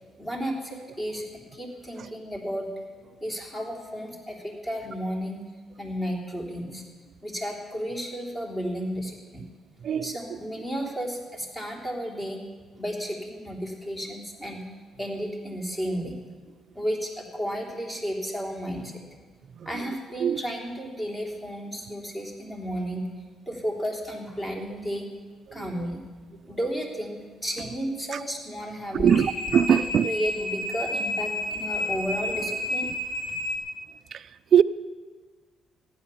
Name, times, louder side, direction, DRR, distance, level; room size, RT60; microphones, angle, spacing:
voice 1, 0.2-2.7 3.2-5.4 5.8-6.8 7.2-9.4 10.0-12.4 12.8-14.6 15.0-16.1 16.7-18.9 19.6-23.0 23.5-25.1 25.5-26.0 26.5-29.1 29.7-29.8 30.0-32.9, equal, 20° left, 3.4 m, -33 dB
voice 2, 9.8-10.2 19.6-19.9 20.2-20.4 24.6-24.7 25.5-25.9 28.1-28.2 28.9-30.1 34.1-34.6, right 8 dB, 60° right, 0.4 m, -23 dB
sound 1, 29.0-33.6, left 1 dB, 40° left, 3.2 m, -30 dB
15.0 x 11.0 x 7.1 m
cardioid pair, 90°, 0 cm